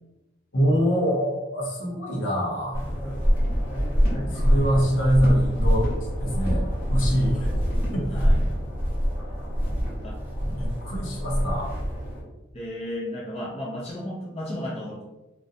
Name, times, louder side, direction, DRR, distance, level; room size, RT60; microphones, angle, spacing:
voice 1, 0.5-2.9 4.3-5.9 6.2-7.4 7.9-8.3 10.4-11.8, equal, 80° left, -3 dB, 0.8 m, -24 dB
sound 1, 2.7-12.2, equal, 10° right, 0.8 m, -25 dB
voice 2, 4.1-4.5 7.3-7.6 8.1-8.4 10.0-10.2 12.5-15.0, left 1 dB, 30° left, -5 dB, 0.4 m, -34 dB
2.5 x 2.1 x 2.6 m, 1.0 s
head